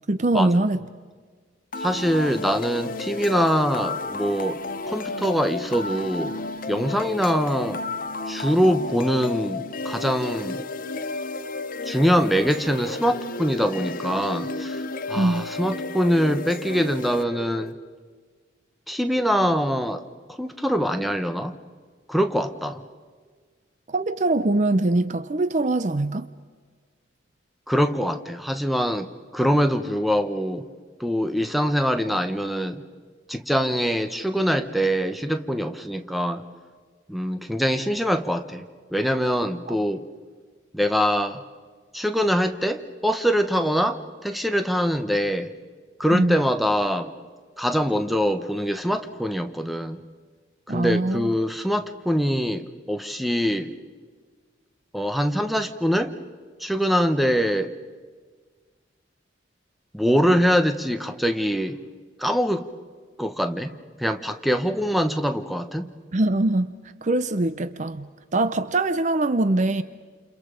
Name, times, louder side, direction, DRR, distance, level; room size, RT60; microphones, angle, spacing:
voice 1, 0.1-0.8 15.1-15.5 23.9-26.3 39.7-39.8 46.1-46.4 50.7-51.3 66.1-66.7 67.0-69.8, right 2 dB, 40° right, 0.6 m, -23 dB
sound 1, 1.7-17.7, left 3 dB, 45° left, 0.8 m, -32 dB
voice 2, 1.8-4.6 4.9-6.4 6.7-7.8 8.3-10.6 11.8-17.7 18.9-20.0 20.4-21.5 22.1-22.8 27.7-30.6 31.0-32.8 33.3-36.4 37.1-40.0 40.7-41.4 41.9-45.5 46.0-47.1 47.6-50.0 50.7-53.7 54.9-56.2 56.6-57.7 59.9-61.8 62.2-62.7 63.2-65.9, equal, ahead, 1.0 m, -24 dB
29.0 x 29.0 x 5.1 m
head